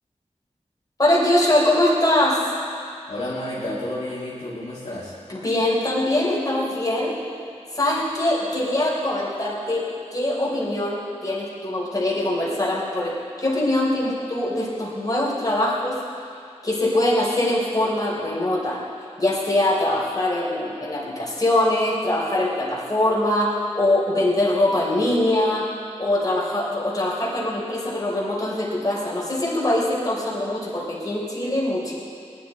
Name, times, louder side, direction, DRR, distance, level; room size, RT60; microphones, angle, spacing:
voice 1, 1.0-2.4 5.3-7.2 7.7-16.0 16.6-18.8 19.2-25.6 26.0-31.9, left 1 dB, 30° left, -5 dB, 3.7 m, -22 dB
voice 2, 3.1-5.2, left 1 dB, 65° left, -8 dB, 2.7 m, -31 dB
19.5 x 11.0 x 4.2 m, 2.4 s
wide cardioid pair, 80°, 12 cm